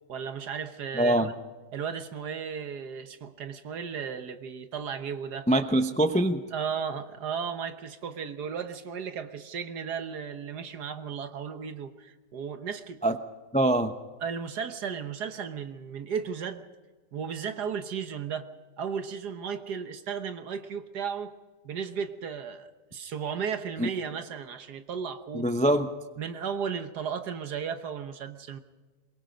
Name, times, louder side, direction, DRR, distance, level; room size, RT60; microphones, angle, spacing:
voice 1, 0.1-1.3 1.7-5.5 6.5-13.0 14.2-16.6 17.1-18.5 18.8-21.3 21.6-25.5 26.2-28.6, right 7 dB, 70° right, 9 dB, 1.7 m, -35 dB
voice 2, 0.9-1.3 5.5-6.4 13.0-13.2 13.5-13.9 23.8-23.9 25.3-25.9, right 1 dB, 10° left, 8 dB, 0.4 m, -23 dB
22.5 x 22.0 x 5.3 m, 1.3 s
omnidirectional pair, 1.8 m